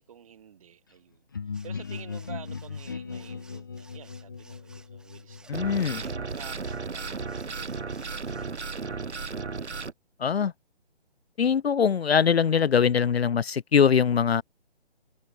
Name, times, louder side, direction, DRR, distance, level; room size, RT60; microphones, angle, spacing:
voice 1, 0.0-9.3, right 9 dB, 30° right, 7.0 m, -50 dB
sound 1, 1.3-7.0, left 5 dB, 20° left, 0.8 m, -39 dB
sound 2, 1.5-8.6, right 3 dB, ahead, 5.0 m, -58 dB
voice 2, 5.5-6.0 10.2-10.5 11.4-14.4, left 7 dB, 65° left, 0.6 m, -22 dB
sound 3, 5.5-9.9, right 4 dB, 85° right, 2.4 m, -34 dB
hypercardioid pair, 170°, 33 cm